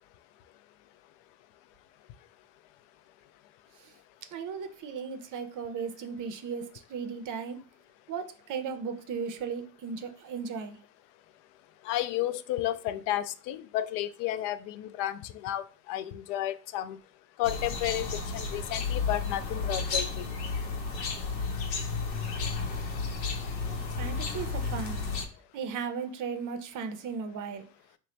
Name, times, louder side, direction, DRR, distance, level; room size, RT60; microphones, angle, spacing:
voice 1, 4.3-7.6 8.1-10.8 24.0-25.1 25.5-27.7, right 6 dB, 40° right, 0.7 m, -36 dB
voice 2, 11.8-17.0 17.4-20.3, left 13 dB, 60° left, 0.5 m, -32 dB
sound 1, 17.4-25.3, left 4 dB, 85° left, 0.8 m, -32 dB
3.1 x 2.2 x 3.8 m
hypercardioid pair, 70°, 49 cm